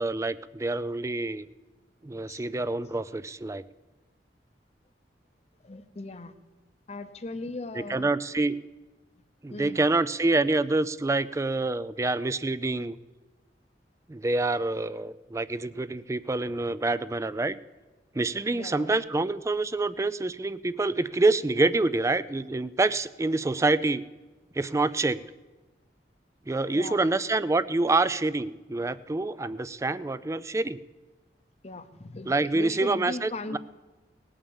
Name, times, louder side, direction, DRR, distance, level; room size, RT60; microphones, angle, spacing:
voice 1, 0.0-1.5 2.0-3.6 7.8-8.6 9.4-13.0 14.1-17.5 18.1-24.0 24.5-25.2 26.5-30.8 32.3-33.6, right 2 dB, 15° right, 16 dB, 0.4 m, -27 dB
voice 2, 5.6-6.3 6.9-8.1 9.5-9.9 18.5-18.9 26.7-27.1 31.6-33.6, left 2 dB, 40° left, 11 dB, 0.8 m, -38 dB
18.0 x 8.8 x 7.2 m, 1.2 s
head